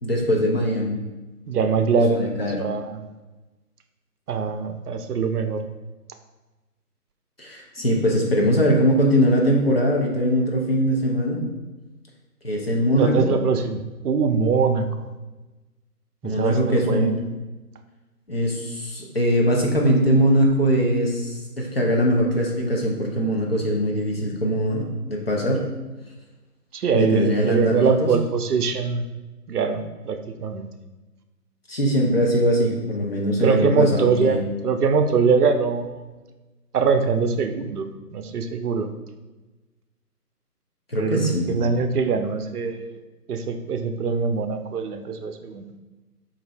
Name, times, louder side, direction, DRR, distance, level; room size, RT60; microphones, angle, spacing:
voice 1, 0.0-1.0 1.8-1.9 2.1-2.6 7.4-11.4 12.4-13.3 16.2-17.1 18.3-25.7 26.9-28.1 31.7-34.4 40.9-41.5, equal, 40° left, -2 dB, 0.5 m, -21 dB
voice 2, 1.5-2.3 2.6-3.1 4.3-5.6 12.9-14.9 16.2-17.2 26.7-29.1 29.5-30.7 33.4-36.0 36.7-37.9 38.1-38.9 41.0-41.2 41.5-42.9 43.3-45.7, right 5 dB, 70° right, 6 dB, 0.5 m, -23 dB
3.1 x 2.6 x 3.9 m, 1.2 s
figure-of-eight pair, 155°, 47 cm